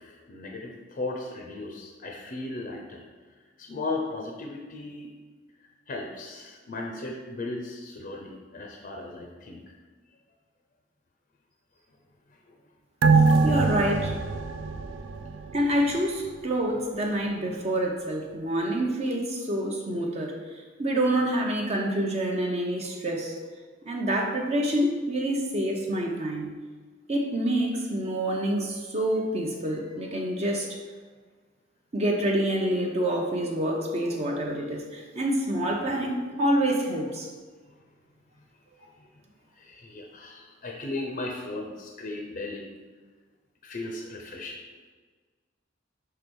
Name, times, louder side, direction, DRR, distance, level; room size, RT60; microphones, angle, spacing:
voice 1, 0.0-3.0 3.6-5.1 5.9-9.7 12.5-12.6 37.7-37.8 38.4-38.5 39.0-39.1 39.5-42.7 43.6-44.6, left 2 dB, 45° left, 1 dB, 0.6 m, -36 dB
sound 1, 13.0-15.9 16.3-16.4, right 4 dB, 75° right, 0.4 m, -23 dB
voice 2, 13.4-14.1 15.5-20.4 20.8-23.3 23.9-26.5 27.1-30.8 31.9-37.3, right 1 dB, 35° right, 0 dB, 0.7 m, -27 dB
5.7 x 3.4 x 5.3 m, 1.4 s
head